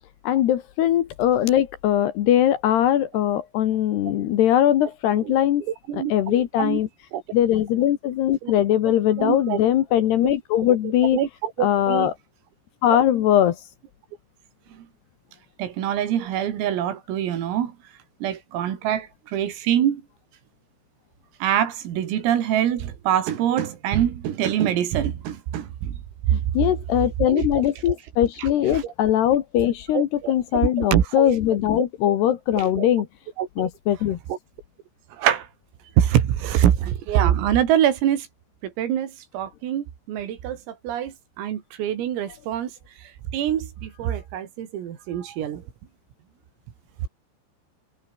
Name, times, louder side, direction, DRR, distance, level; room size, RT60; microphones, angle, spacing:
voice 1, 0.2-5.6 5.9-6.9 7.3-11.2 11.6-12.1 12.8-13.6 26.3-33.1 33.6-34.2, left 11 dB, 70° left, 3.0 m, -21 dB
voice 2, 5.9-6.8 7.1-7.2 8.4-8.5 9.2-9.6 10.2-10.3 11.1-12.1 12.9-13.0 14.7-14.9 15.6-17.7 18.2-20.0 21.4-26.0 26.4-26.7 27.2-27.9 28.4-28.5 29.9-31.4 31.7-31.8 32.6-32.9 33.4-33.7 34.3-34.4 35.2-35.5 36.0-38.3 38.6-42.7 43.3-45.6, right 10 dB, 85° right, 5.4 m, -25 dB
omnidirectional pair, 5.9 m